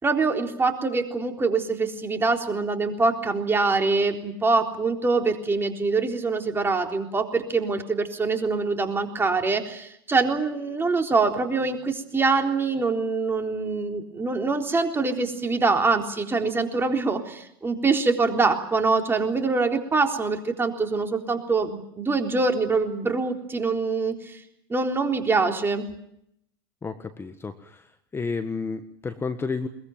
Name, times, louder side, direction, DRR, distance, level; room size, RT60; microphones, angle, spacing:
voice 1, 0.0-24.4 24.7-25.9, right 3 dB, 20° right, 4 dB, 3.8 m, -24 dB
voice 2, 26.8-27.9 28.1-29.7, left 4 dB, 20° left, 9 dB, 1.5 m, -31 dB
22.0 x 21.0 x 9.2 m, 0.75 s
hypercardioid pair, 85°, 12 cm